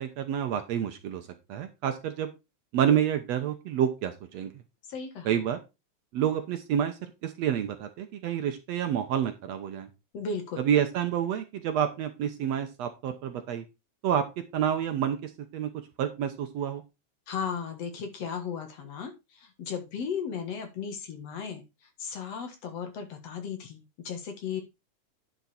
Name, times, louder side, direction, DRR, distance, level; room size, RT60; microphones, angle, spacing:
voice 1, 0.0-2.3 2.7-4.5 5.3-5.6 6.1-9.9 10.6-13.6 14.0-14.2 14.5-15.7 16.0-16.8, right 9 dB, 65° right, 7 dB, 1.9 m, -28 dB
voice 2, 4.9-5.4 10.1-10.7 17.3-21.6 22.0-24.6, left 6 dB, 60° left, 6 dB, 2.5 m, -35 dB
10.5 x 5.3 x 4.3 m, 0.25 s
omnidirectional pair, 3.6 m